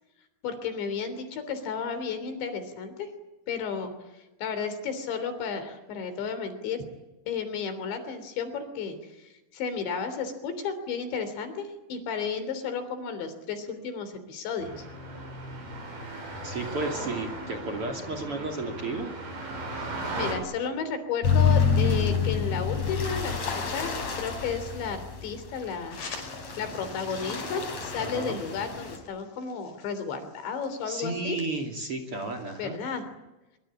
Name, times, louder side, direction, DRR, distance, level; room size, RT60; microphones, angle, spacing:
voice 1, 0.4-3.1 3.5-6.8 7.3-14.9 19.7-26.0 26.6-31.4 32.6-33.1, left 6 dB, 75° left, 10 dB, 5.6 m, -33 dB
sound 1, 14.6-20.3, right 2 dB, 75° right, 9.5 m, -37 dB
voice 2, 16.4-19.1 28.0-28.4 30.9-32.8, right 2 dB, 35° right, 7 dB, 3.0 m, -33 dB
sound 2, 21.2-29.0, left 6 dB, 40° left, 5.6 m, -28 dB
sound 3, 25.9-32.7, left 4 dB, 60° left, 7.5 m, -48 dB
24.5 x 24.0 x 8.6 m, 1.0 s
omnidirectional pair, 5.2 m